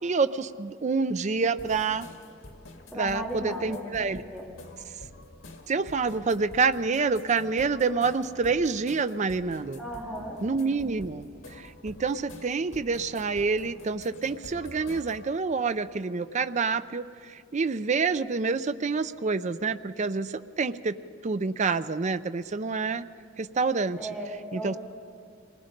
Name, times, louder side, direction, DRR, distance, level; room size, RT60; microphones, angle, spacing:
voice 1, 0.0-2.1 2.9-4.2 5.7-9.8 10.4-20.9 21.2-23.0 23.4-24.0 24.5-24.8, right 4 dB, 40° right, 11 dB, 0.5 m, -27 dB
sound 1, 1.6-15.3, left 1 dB, 90° left, 2.0 m, -48 dB
voice 2, 2.9-3.9 4.3-4.4 9.8-10.4 23.9-24.8, right 1 dB, 5° right, -5 dB, 3.2 m, -36 dB
26.5 x 20.0 x 5.2 m, 2.3 s
head